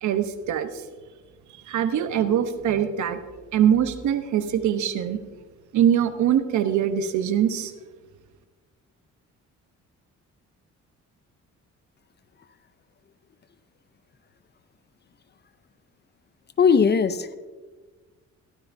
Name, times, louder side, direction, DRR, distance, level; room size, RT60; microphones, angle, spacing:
voice 1, 0.0-0.7 1.7-3.2 3.5-5.2 5.7-7.7, right 9 dB, 75° right, 10 dB, 0.9 m, -23 dB
voice 2, 16.6-17.4, left 6 dB, 35° left, 14 dB, 0.6 m, -19 dB
15.5 x 12.0 x 2.6 m, 1.3 s
cardioid pair, 90°, 30 cm